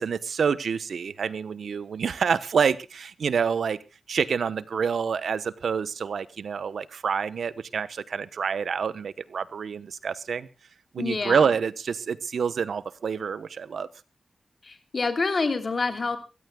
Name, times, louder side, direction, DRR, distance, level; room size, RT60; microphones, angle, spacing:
voice 1, 0.0-3.8 4.1-10.5 10.9-13.9, right 6 dB, 90° right, 16 dB, 1.0 m, -27 dB
voice 2, 11.0-11.5 14.6-16.2, left 4 dB, 45° left, 9 dB, 2.9 m, -27 dB
24.0 x 16.0 x 2.3 m, 0.30 s
wide cardioid pair, 120°, 0 cm